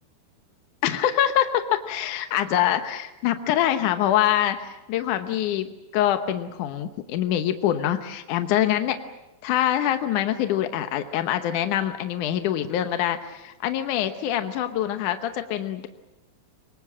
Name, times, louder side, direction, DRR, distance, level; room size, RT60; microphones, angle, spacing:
voice 1, 0.8-9.0 9.4-15.9, left 11 dB, 75° left, 8 dB, 1.8 m, -24 dB
25.0 x 24.0 x 7.4 m, 0.99 s
omnidirectional pair, 5.0 m